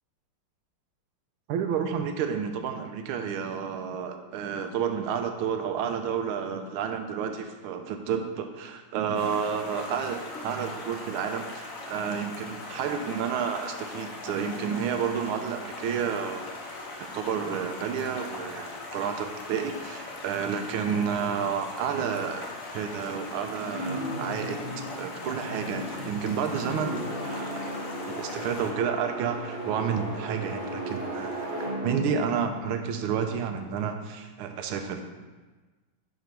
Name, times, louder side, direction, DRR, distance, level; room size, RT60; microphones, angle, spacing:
voice 1, 1.5-16.4 17.0-27.7 28.1-31.5 31.8-35.0, right 7 dB, 80° right, 6 dB, 1.4 m, -30 dB
Stream, 9.1-28.7, left 3 dB, 70° left, 0.8 m, -40 dB
sound 1, 23.7-33.6, equal, 55° right, 2.6 m, -36 dB
4.8 x 4.3 x 5.2 m, 1.3 s
omnidirectional pair, 2.4 m